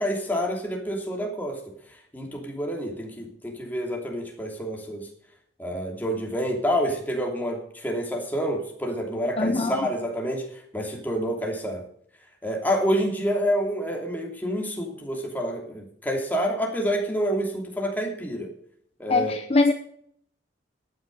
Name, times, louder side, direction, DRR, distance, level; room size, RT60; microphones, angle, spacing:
voice 1, 0.0-1.6 2.1-5.1 5.6-10.4 10.7-11.8 12.4-18.5 19.0-19.3, equal, 10° left, 1 dB, 2.9 m, -28 dB
voice 2, 9.4-9.9 19.1-19.7, left 3 dB, 35° left, 7 dB, 0.7 m, -22 dB
12.5 x 9.6 x 5.4 m, 0.64 s
head